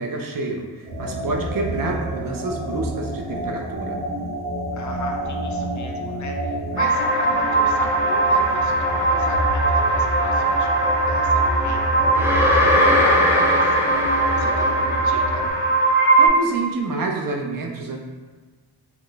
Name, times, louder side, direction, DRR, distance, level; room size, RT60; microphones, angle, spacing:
voice 1, 0.0-4.0 16.2-18.0, right 3 dB, 55° right, 2 dB, 0.5 m, -28 dB
sound 1, 0.8-15.5, right 1 dB, 80° right, 0.9 m, -28 dB
voice 2, 4.7-15.5, left 3 dB, 45° left, 3 dB, 0.5 m, -36 dB
sound 2, 6.8-16.3, right 3 dB, 25° right, 0.9 m, -20 dB
sound 3, 12.1-15.2, left 1 dB, 5° right, 0.5 m, -20 dB
3.0 x 2.3 x 3.8 m, 1.4 s
cardioid pair, 85°, 42 cm